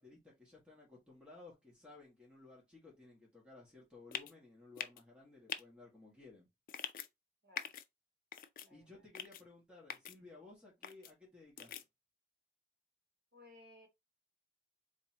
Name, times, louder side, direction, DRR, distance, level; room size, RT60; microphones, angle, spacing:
voice 1, 0.0-6.5 8.7-11.8, left 3 dB, 5° right, 1.7 m, -57 dB
sound 1, 4.1-4.3 4.8-5.0 5.5-5.6 6.7-7.1 7.6-7.8 8.3-8.7 9.1-9.4 9.9-10.1 10.8-11.1 11.6-11.8, left 9 dB, 50° left, 0.4 m, -43 dB
voice 2, 7.4-7.7 8.6-9.1 13.3-13.9, left 2 dB, 65° right, 2.1 m, -60 dB
4.0 x 3.6 x 2.9 m
head